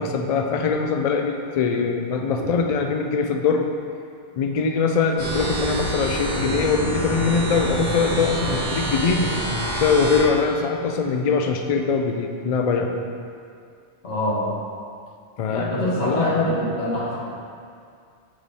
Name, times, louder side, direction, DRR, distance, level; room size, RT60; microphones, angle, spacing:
voice 1, 0.0-3.7 4.4-9.3 9.7-12.9 15.4-15.7 16.0-16.6, left 5 dB, 60° left, 4 dB, 0.4 m, -22 dB
sound 1, 5.2-10.3, right 1 dB, 50° right, 1.4 m, -27 dB
voice 2, 14.0-14.5 15.5-17.2, left 1 dB, 85° left, -7 dB, 1.8 m, -25 dB
7.6 x 3.5 x 4.1 m, 2.3 s
omnidirectional pair, 1.2 m